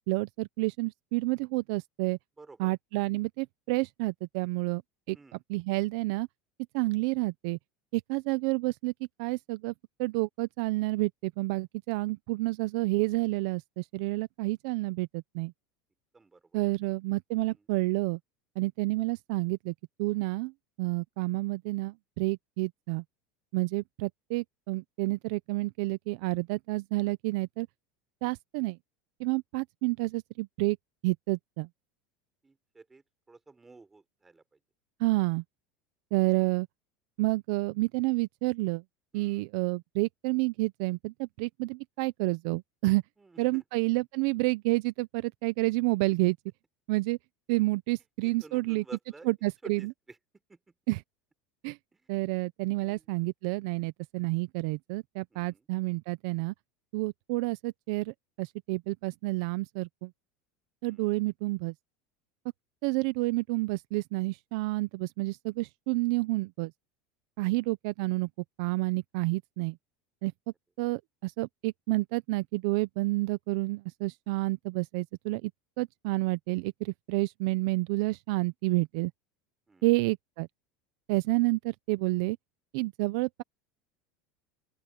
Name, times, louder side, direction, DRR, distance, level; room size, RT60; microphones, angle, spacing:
voice 1, 0.0-2.2 2.6-4.8 5.1-6.3 6.7-7.6 7.9-8.9 9.2-9.7 10.0-15.5 16.5-18.2 18.6-19.7 20.0-20.5 20.8-23.0 23.5-27.7 28.2-28.8 29.2-30.8 31.0-31.7 35.0-35.4 36.1-36.7 37.2-38.8 39.1-43.0 43.4-46.4 46.9-47.2 47.5-48.8 49.3-49.9 50.9-51.0 51.6-51.8 52.1-56.5 56.9-60.1 60.8-61.7 62.8-66.7 67.4-68.3 68.6-69.8 70.2-70.3 70.8-75.5 75.8-79.1 79.8-80.5 81.1-82.4 82.7-83.4, right 23 dB, 60° right, 0.5 m, -29 dB
voice 2, 2.4-2.7 5.1-5.4 16.1-16.4 17.4-17.6 32.4-34.4 39.1-39.5 43.2-43.6 48.2-49.3 49.6-49.9 50.5-50.6 51.9-52.0 52.8-53.0 55.3-55.6 60.8-61.1 67.4-67.7 79.7-79.9, right 3 dB, 10° right, 3.7 m, -52 dB
open air
supercardioid pair, 165°, 3 cm